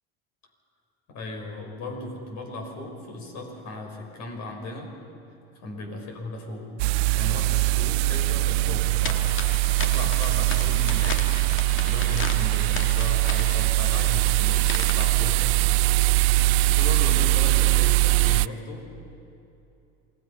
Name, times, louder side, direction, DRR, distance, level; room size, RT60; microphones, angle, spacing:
voice 1, 1.1-4.9 5.5-6.7 7.1-9.5 9.8-15.6 16.7-18.9, left 2 dB, 60° left, 2 dB, 5.9 m, -37 dB
sound 1, 6.8-18.5, right 19 dB, 80° right, 0.5 m, -22 dB
sound 2, 8.5-13.8, right 1 dB, 10° right, 3.3 m, -49 dB
sound 3, 9.0-15.4, left 5 dB, 40° left, 1.8 m, -37 dB
28.0 x 18.5 x 5.7 m, 2.8 s
supercardioid pair, 90°, 31 cm